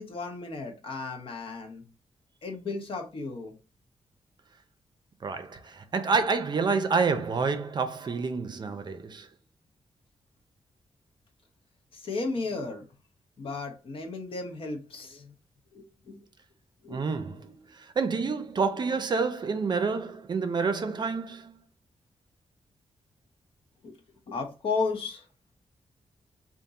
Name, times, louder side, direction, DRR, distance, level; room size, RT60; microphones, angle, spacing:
voice 1, 0.0-1.8 2.4-3.5 11.9-12.8 13.4-15.3 15.7-16.2 16.8-17.0 23.8-23.9 24.3-25.2, left 3 dB, 60° left, 1.0 m, -34 dB
voice 2, 5.2-9.3 16.9-21.6, right 4 dB, 45° right, 0.6 m, -28 dB
3.7 x 2.5 x 4.0 m
wide cardioid pair, 130°, 10 cm